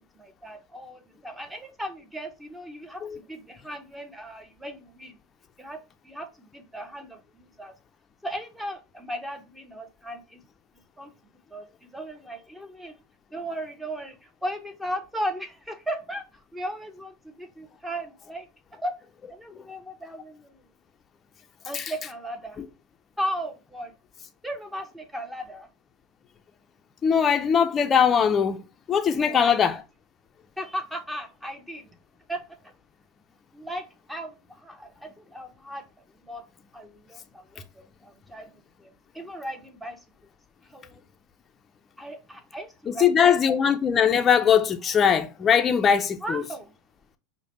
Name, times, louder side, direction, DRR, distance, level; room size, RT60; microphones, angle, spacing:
voice 1, 0.0-5.2 5.6-5.8 6.0-7.7 8.2-10.4 11.0-11.1 11.5-13.0 13.3-18.5 18.8-18.9 19.3-20.6 21.6-22.6 23.2-23.9 24.4-25.7 29.2-29.8 30.6-31.9 32.3-32.7 33.5-36.4 36.7-38.5 38.8-38.9 39.1-40.0 40.7-41.0 42.0-43.3 46.2-46.7, equal, 5° right, 0.8 m, -36 dB
voice 2, 27.0-28.6 28.9-29.7 42.9-46.4, left 7 dB, 30° left, 0.4 m, -21 dB
4.8 x 2.1 x 3.0 m
hypercardioid pair, 100°, 0 cm